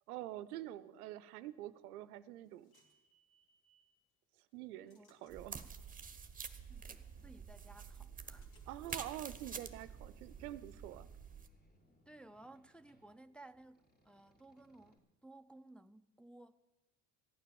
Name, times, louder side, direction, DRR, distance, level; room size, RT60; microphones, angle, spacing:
voice 1, 0.1-2.7 4.5-5.6 8.7-11.1, right 14 dB, 90° right, 0.6 m, -46 dB
sound 1, 1.8-4.0 4.5-7.6 8.0-11.5, left 1 dB, 55° left, 2.6 m, -74 dB
sound 2, 5.3-11.5, right 6 dB, 20° right, 1.0 m, -49 dB
voice 2, 6.7-8.5 12.1-16.6, right 2 dB, 5° left, 0.4 m, -58 dB
Boat Water vehicle, 7.2-15.0, equal, 20° left, 2.7 m, -69 dB
14.5 x 9.3 x 6.9 m
hypercardioid pair, 60°, 43 cm